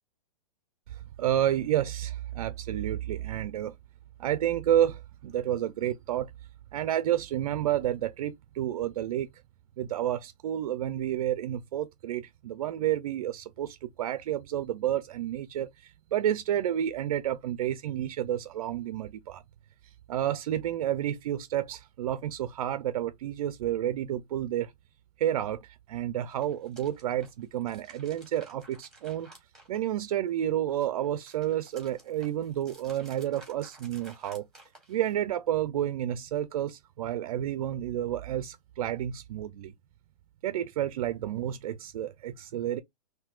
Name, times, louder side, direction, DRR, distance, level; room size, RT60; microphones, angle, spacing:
voice 1, 1.2-3.7 4.2-6.3 6.7-9.3 9.8-19.4 20.1-24.7 25.2-29.3 29.7-34.4 34.9-39.7 40.4-42.8, right 11 dB, 55° right, 0.5 m, -30 dB
sound 1, 26.2-30.3 30.7-35.3, right 2 dB, ahead, 2.2 m, -55 dB
5.7 x 2.8 x 2.3 m
hypercardioid pair, 150°, 21 cm